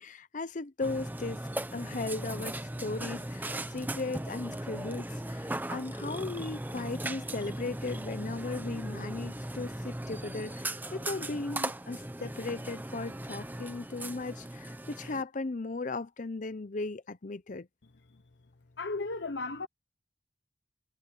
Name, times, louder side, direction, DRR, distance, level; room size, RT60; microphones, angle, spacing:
voice 1, 0.0-1.4 1.7-17.7, left 3 dB, 45° left, 0.7 m, -37 dB
Burping eructation, 0.8-15.2, right 1 dB, 10° right, 0.9 m, -38 dB
voice 2, 18.8-19.7, left 3 dB, 75° left, 0.9 m, -34 dB
head